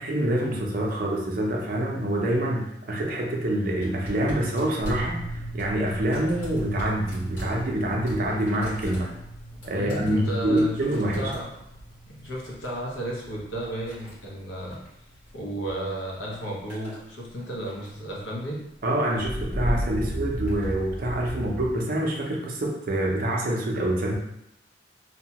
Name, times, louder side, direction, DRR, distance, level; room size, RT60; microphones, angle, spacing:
voice 1, 0.0-9.1 9.6-11.3 18.8-24.1, right 1 dB, 50° right, -1 dB, 0.5 m, -26 dB
sound 1, 3.8-15.7 16.0-17.0 17.4-18.1 19.0-19.3 20.1-20.8 21.6-21.7, equal, 40° left, 1.2 m, -45 dB
sound 2, 4.8-16.7 17.0-17.1 19.1-21.8, equal, 5° right, 0.8 m, -36 dB
voice 2, 9.7-11.5 12.1-14.8 15.3-18.6, right 1 dB, 85° left, -3 dB, 0.8 m, -33 dB
2.8 x 2.2 x 2.8 m, 0.82 s
head